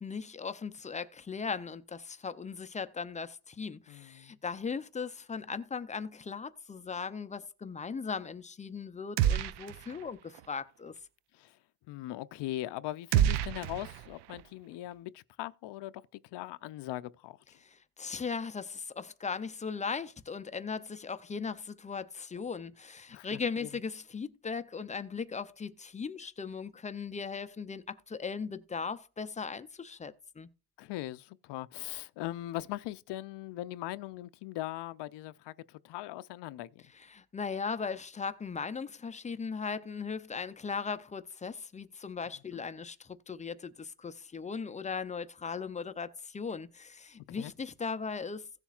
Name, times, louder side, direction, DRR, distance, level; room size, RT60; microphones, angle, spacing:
voice 1, 0.0-10.9 17.6-30.5 36.9-48.4, left 5 dB, 20° left, 0.4 m, -38 dB
voice 2, 3.9-4.3 11.3-11.6 11.9-16.0 16.3-17.6 23.1-23.3 23.6-23.7 30.8-36.7 47.3-47.5, left 15 dB, 80° left, 0.6 m, -40 dB
sound 1, 9.2-10.1 10.3-10.5 13.1-14.4, right 11 dB, 75° right, 0.6 m, -29 dB
16.5 x 7.1 x 2.4 m
cardioid pair, 150°, 41 cm